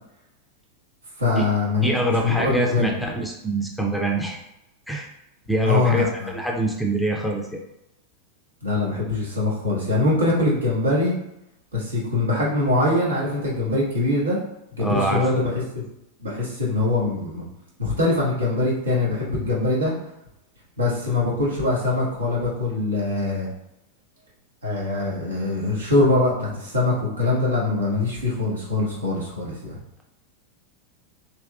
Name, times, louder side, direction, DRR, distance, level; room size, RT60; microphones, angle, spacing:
voice 1, 1.2-2.9 5.6-6.3 8.6-11.2 11.7-14.4 14.7-15.8 16.2-17.5 17.8-19.9 20.8-23.5 24.6-29.8, left 2 dB, 75° right, -5 dB, 1.1 m, -23 dB
voice 2, 1.8-4.4 4.9-5.1 5.5-7.6 14.8-15.6, right 1 dB, ahead, 0 dB, 0.5 m, -25 dB
3.4 x 2.9 x 2.3 m, 0.85 s
figure-of-eight pair, 90°, 0 cm